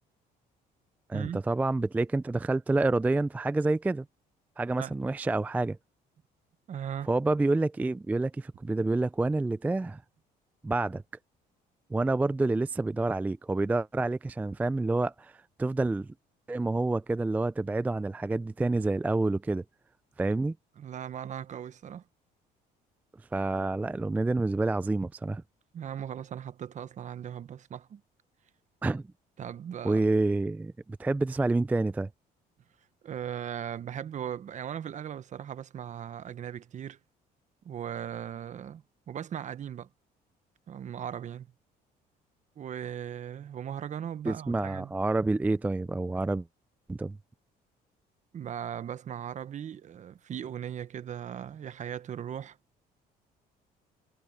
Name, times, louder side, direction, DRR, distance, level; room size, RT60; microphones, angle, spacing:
voice 1, 1.1-4.0 4.6-5.8 7.1-10.0 10.6-11.0 11.9-16.1 16.5-19.6 20.2-20.5 23.3-25.4 28.8-29.0 29.8-32.1 44.3-46.4 46.9-47.2, right 2 dB, 10° right, 0.3 m, -28 dB
voice 2, 6.7-7.1 20.8-22.0 25.7-28.0 29.4-30.0 33.0-37.0 37.6-39.9 40.7-41.5 42.6-44.9 48.3-52.6, right 9 dB, 45° right, 1.1 m, -38 dB
cardioid pair, 110°, 17 cm